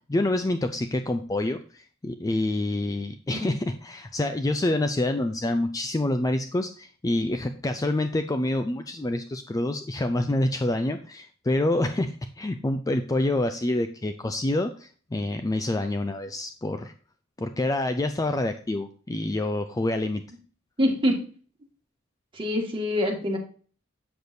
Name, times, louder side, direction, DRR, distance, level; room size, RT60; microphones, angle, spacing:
voice 1, 0.1-16.9 17.4-20.2, left 1 dB, 15° left, 8 dB, 0.4 m, -27 dB
voice 2, 20.8-21.2 22.3-23.4, left 1 dB, 25° right, 0 dB, 1.8 m, -25 dB
7.9 x 6.7 x 2.6 m, 0.41 s
head